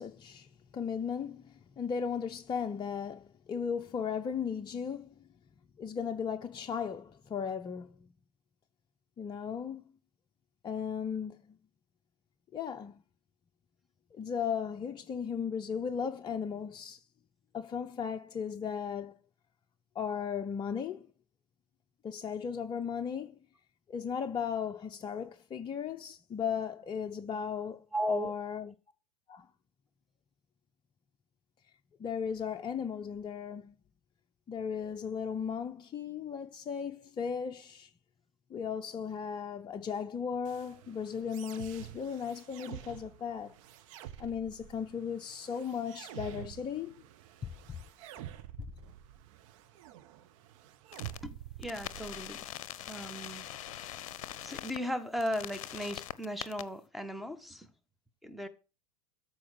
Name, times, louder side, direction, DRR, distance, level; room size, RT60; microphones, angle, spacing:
voice 1, 0.0-5.1 5.8-8.1 9.2-9.8 10.6-11.6 12.5-13.0 14.1-17.0 17.5-19.2 19.9-21.1 22.0-23.4 23.9-28.7 29.3-29.5 32.0-33.7 34.5-37.9 38.5-43.5 44.2-47.0 47.4-47.8, left 7 dB, 25° left, 0.7 m, -36 dB
voice 2, 27.9-28.3 51.2-52.5 52.9-53.5 54.4-57.7 58.2-58.5, left 1 dB, ahead, 1.3 m, -36 dB
sound 1, 40.4-52.4, right 13 dB, 55° right, 1.2 m, -48 dB
sound 2, 50.9-51.2 51.6-54.8 55.2-56.6, left 12 dB, 60° left, 0.7 m, -42 dB
13.5 x 4.7 x 6.2 m
figure-of-eight pair, 80°, 19 cm